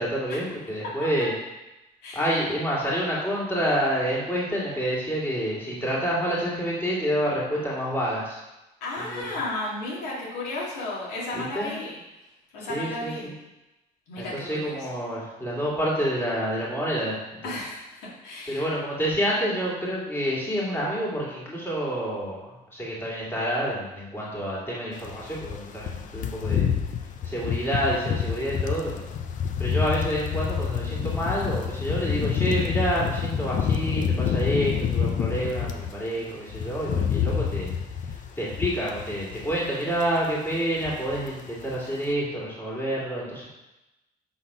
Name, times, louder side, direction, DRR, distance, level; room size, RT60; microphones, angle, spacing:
voice 1, 0.0-1.3 2.1-8.4 9.0-9.3 11.3-11.7 12.7-13.3 14.2-17.5 18.5-26.7 27.2-29.2 29.6-37.7 38.4-43.5, equal, 10° left, -5 dB, 2.3 m, -28 dB
voice 2, 8.8-12.0 12.5-13.3 14.1-14.8 17.4-18.7, left 2 dB, 90° left, -5 dB, 2.1 m, -33 dB
sound 1, 25.0-35.9 36.3-39.7 39.9-40.2 40.5-41.4 41.6-41.8, left 7 dB, 50° left, 0.6 m, -28 dB
6.1 x 3.8 x 5.5 m, 0.99 s
cardioid pair, 110°, 17 cm